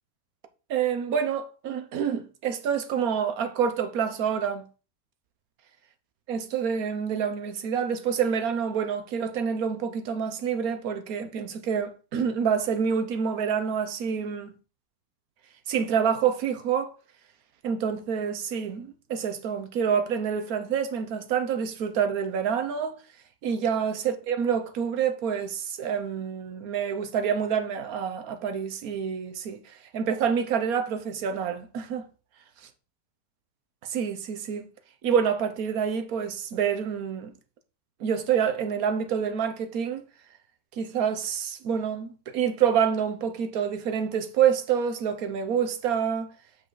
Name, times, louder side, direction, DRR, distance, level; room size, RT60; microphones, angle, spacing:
voice 1, 0.7-4.6 6.3-14.5 15.7-16.9 17.6-23.0 23.4-32.1 33.8-34.7 35.0-37.3 38.0-40.0 40.8-46.3, right 7 dB, 60° right, 1.3 m, -27 dB
7.5 x 5.5 x 3.9 m
omnidirectional pair, 1.9 m